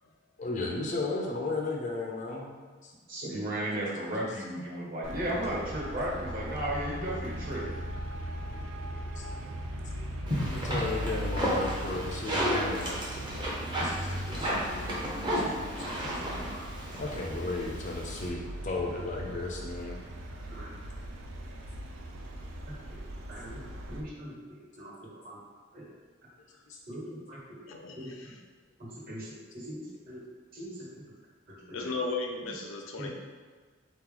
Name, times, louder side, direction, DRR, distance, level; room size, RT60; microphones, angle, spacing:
voice 1, 0.4-2.9 9.2-9.3 10.4-13.1 13.8-14.5 17.0-20.0 26.7-27.4, left 2 dB, 40° left, -1 dB, 0.5 m, -35 dB
voice 2, 3.1-7.6 14.1-14.7 16.4-16.6 20.5-20.7 22.7-23.0 23.3-25.4 25.7-25.9 26.9-27.6 27.9-28.3 28.8-30.2 30.5-31.0 31.5-31.9 32.4-32.5 33.0-33.1, right 1 dB, 45° right, -5 dB, 1.3 m, -37 dB
Traffic noise roadway noise, 5.0-24.0, right 1 dB, 80° right, 0.5 m, -39 dB
sound 1, 10.3-18.3, equal, 25° right, 0.8 m, -33 dB
voice 3, 27.7-28.4 31.7-33.1, left 3 dB, 90° left, 1 dB, 0.6 m, -36 dB
4.0 x 3.0 x 3.8 m, 1.5 s
head